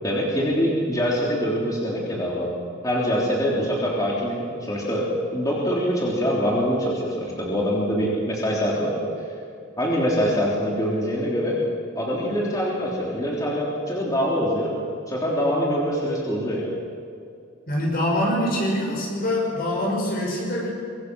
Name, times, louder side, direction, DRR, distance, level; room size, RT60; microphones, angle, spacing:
voice 1, 0.0-2.5 2.8-5.1 5.3-8.9 9.8-11.6 12.0-14.8 15.1-16.7, equal, 20° left, -5 dB, 3.6 m, -24 dB
voice 2, 17.7-20.7, left 1 dB, 50° left, -2 dB, 6.2 m, -24 dB
25.0 x 23.0 x 6.3 m, 2.5 s
head